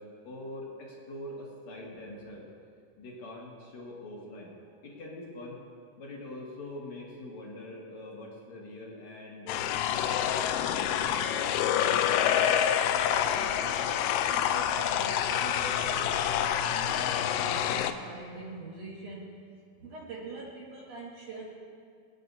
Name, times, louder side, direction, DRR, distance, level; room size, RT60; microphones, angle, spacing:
voice 1, 0.0-2.5 3.0-4.5 4.8-5.6 6.0-10.3 10.6-11.6, left 1 dB, 55° left, -3 dB, 2.8 m, -44 dB
sound 1, 9.5-17.9, left 9 dB, 80° left, 2.1 m, -27 dB
voice 2, 12.8-19.4 19.8-21.6, right 2 dB, 55° right, -4 dB, 2.1 m, -43 dB
24.0 x 9.4 x 2.7 m, 2.3 s
omnidirectional pair, 4.0 m